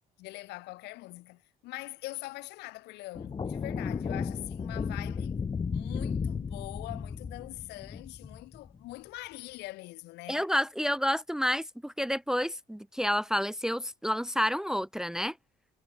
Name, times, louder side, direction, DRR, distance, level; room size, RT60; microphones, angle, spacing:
voice 1, 0.2-5.4 5.7-10.5, left 20 dB, 90° left, 2.2 m, -43 dB
sound 1, 3.2-8.8, left 5 dB, 30° left, 1.5 m, -34 dB
voice 2, 10.3-15.4, equal, 5° right, 0.5 m, -29 dB
cardioid pair, 110°, 17 cm